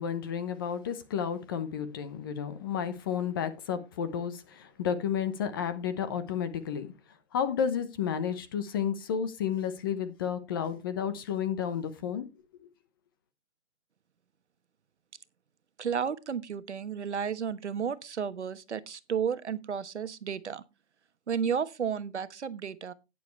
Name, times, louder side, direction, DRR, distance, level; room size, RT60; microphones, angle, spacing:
voice 1, 0.0-6.9 7.3-12.2 12.6-12.7, left 8 dB, 20° left, 0.9 m, -32 dB
voice 2, 15.8-20.6 21.3-22.9, right 7 dB, 85° right, 1.3 m, -32 dB
11.5 x 9.7 x 3.2 m
hypercardioid pair, 165°, 34 cm